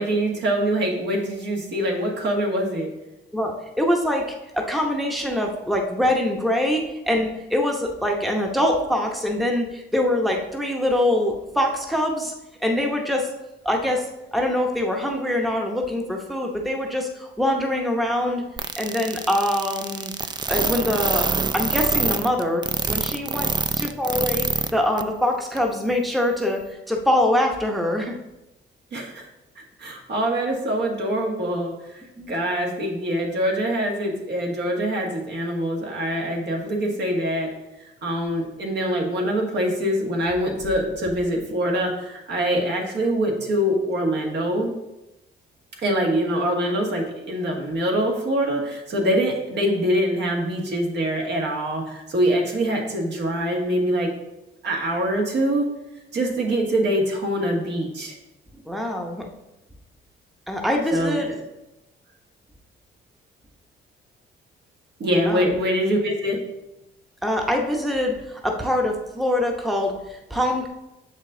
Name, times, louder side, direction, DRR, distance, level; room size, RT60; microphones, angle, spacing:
voice 1, 0.0-2.9 28.9-29.3 29.8-37.5 37.8-44.7 45.8-54.1 54.6-55.7 56.1-58.2 60.9-61.3 65.0-66.4, equal, 60° right, 0 dB, 1.6 m, -24 dB
voice 2, 3.3-12.3 12.6-13.3 13.6-14.1 14.3-18.4 18.8-20.1 20.5-21.3 21.5-22.6 22.9-23.5 23.8-28.1 32.2-32.3 58.6-59.3 60.5-61.3 65.3-65.6 67.2-70.7, left 1 dB, ahead, 1 dB, 0.8 m, -24 dB
sound 1, 18.6-24.7 25.0-25.1 25.6-25.7, right 4 dB, 20° right, 0.4 m, -25 dB
6.7 x 5.2 x 3.8 m, 0.95 s
cardioid pair, 90°, 20 cm